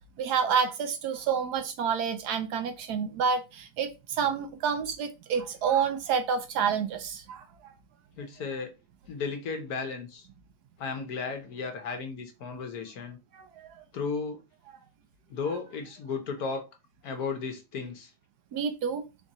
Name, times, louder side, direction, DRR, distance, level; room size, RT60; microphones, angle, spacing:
voice 1, 0.2-7.5 13.3-13.7 18.5-19.0, right 6 dB, 70° right, 1.1 m, -29 dB
voice 2, 8.2-8.7 9.1-10.3 10.8-13.2 13.9-14.4 15.3-16.6 17.0-18.1, left 5 dB, 65° left, 1.2 m, -34 dB
4.5 x 2.5 x 4.1 m
omnidirectional pair, 1.9 m